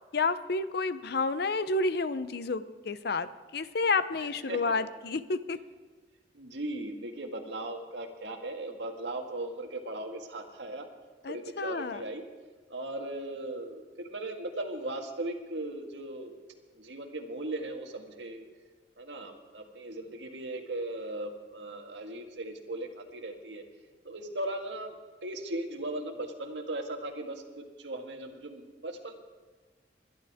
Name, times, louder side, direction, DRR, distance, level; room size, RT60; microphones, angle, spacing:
voice 1, 0.1-5.6 11.2-12.0, left 3 dB, 60° left, 13 dB, 0.6 m, -30 dB
voice 2, 6.3-10.9 11.3-12.2 12.7-16.3 16.7-18.4 19.0-23.6 24.0-24.9 25.2-29.1, right 1 dB, 85° right, 3 dB, 1.7 m, -38 dB
21.5 x 11.5 x 3.6 m, 1.4 s
head